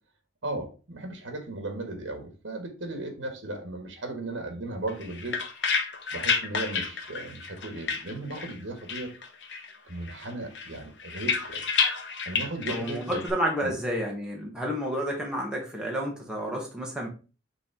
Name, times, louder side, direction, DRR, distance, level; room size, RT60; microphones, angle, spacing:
voice 1, 0.4-5.4 6.1-9.1 9.8-11.6 12.2-13.2 13.6-13.7, right 2 dB, 75° right, 6 dB, 1.3 m, -36 dB
sound 1, 4.9-8.6 8.9-9.8 10.0-13.3, left 5 dB, 65° left, 1.0 m, -30 dB
voice 2, 12.7-17.1, equal, 5° right, -1 dB, 1.4 m, -30 dB
6.2 x 3.4 x 4.4 m, 0.34 s
head